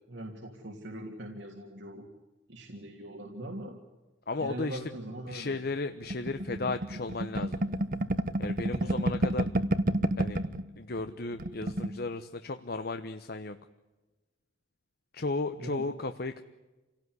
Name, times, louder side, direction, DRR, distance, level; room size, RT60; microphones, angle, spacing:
voice 1, 0.1-2.0 2.5-3.8 4.4-5.6 8.7-9.3 15.6-15.8, right 1 dB, 70° right, 1 dB, 3.0 m, -41 dB
voice 2, 4.3-4.8 5.3-7.6 8.4-9.5 10.2-10.4 10.8-13.6 15.1-16.4, left 3 dB, 55° left, 9 dB, 1.0 m, -34 dB
sound 1, 6.1-10.6 11.0-11.1 11.3-11.9, right 1 dB, 45° right, 1.2 m, -29 dB
28.5 x 17.5 x 9.7 m, 1.1 s
head